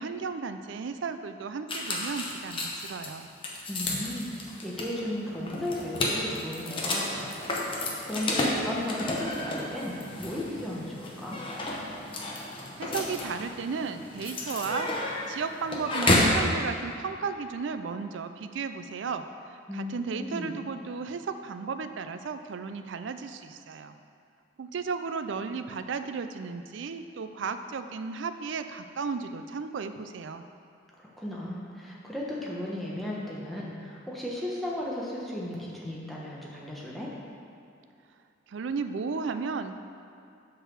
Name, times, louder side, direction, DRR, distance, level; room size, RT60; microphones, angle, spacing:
voice 1, 0.0-3.3 12.8-24.0 24.6-30.4 38.5-39.7, right 5 dB, 70° right, 9 dB, 0.4 m, -34 dB
sound 1, 1.7-16.4, left 1 dB, 25° left, 0.8 m, -31 dB
voice 2, 3.7-7.3 7.7-11.4 19.7-20.6 31.0-37.1, left 1 dB, ahead, -5 dB, 1.0 m, -35 dB
7.9 x 4.0 x 6.4 m, 2.5 s
head